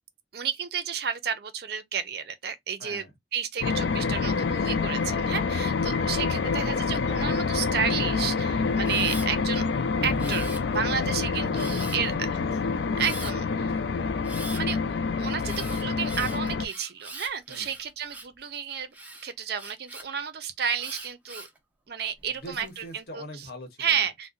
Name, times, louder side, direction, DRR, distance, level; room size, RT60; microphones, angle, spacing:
voice 1, 0.3-3.0 3.3-9.6 10.0-10.5 10.7-12.1 13.0-13.7 14.5-14.8 15.2-18.9 19.2-21.5 21.9-23.5 23.8-24.3, right 7 dB, 60° right, 0.5 m, -31 dB
voice 2, 2.8-3.1 9.9-13.3 13.7-13.9 17.5-17.7 22.4-24.1, left 1 dB, 55° left, 1.0 m, -41 dB
sound 1, 3.6-16.7, left 4 dB, 75° left, 0.4 m, -27 dB
Camera, 8.8-9.3 10.2-10.9 11.5-12.1 13.0-13.3 14.2-14.6 15.4-18.4 18.9-20.0 20.8-21.6 22.2-22.7, right 2 dB, 10° right, 0.5 m, -42 dB
2.5 x 2.1 x 3.8 m
head